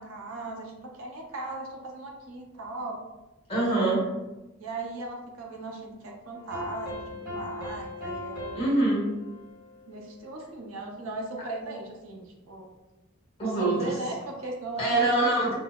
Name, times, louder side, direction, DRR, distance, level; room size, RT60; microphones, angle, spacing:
voice 1, 0.0-3.0 4.6-8.6 9.9-12.7 13.4-15.3, right 2 dB, 70° right, 1 dB, 0.6 m, -38 dB
voice 2, 3.5-4.1 8.5-9.0 13.4-14.0 14.8-15.5, right 2 dB, 25° left, -5 dB, 1.1 m, -24 dB
sound 1, 6.3-10.5, left 2 dB, 5° right, 1.4 m, -39 dB
5.2 x 2.0 x 2.3 m, 1.1 s
head